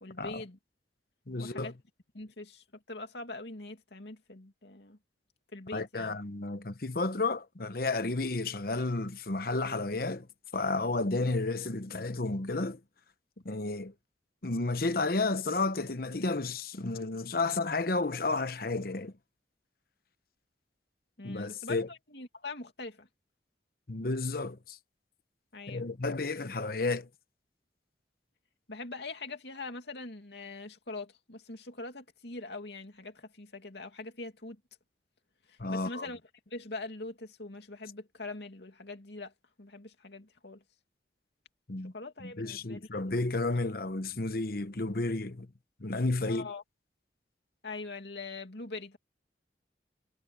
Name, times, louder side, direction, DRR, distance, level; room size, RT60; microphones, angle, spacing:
voice 1, 0.0-0.6 1.4-1.7 2.1-5.0 5.5-6.2 21.2-23.1 25.5-25.9 28.7-34.6 35.5-36.2 36.5-39.3 39.6-40.6 41.8-43.0 43.3-43.4 46.2-46.6 47.6-49.0, left 3 dB, 70° left, 2.6 m, -43 dB
voice 2, 1.3-1.7 5.7-10.3 10.5-12.8 13.4-13.9 14.4-19.1 21.2-21.9 23.9-24.8 25.7-27.1 35.6-36.1 41.7-41.9 42.2-45.5 45.8-46.5, left 3 dB, 55° left, 1.0 m, -32 dB
head